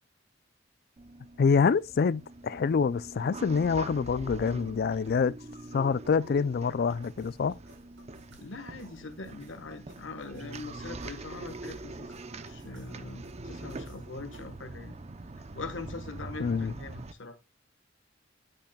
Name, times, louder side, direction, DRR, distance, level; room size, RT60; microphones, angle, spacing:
sound 1, 1.0-17.1, right 2 dB, 35° right, 0.6 m, -44 dB
voice 1, 1.4-5.4 5.7-7.6 16.4-16.7, left 5 dB, 55° left, 0.4 m, -26 dB
sound 2, 6.7-14.6, right 1 dB, 75° right, 4.8 m, -58 dB
voice 2, 8.4-12.2 12.4-14.9 15.5-17.4, left 3 dB, 85° left, 1.4 m, -42 dB
8.7 x 8.7 x 2.3 m
head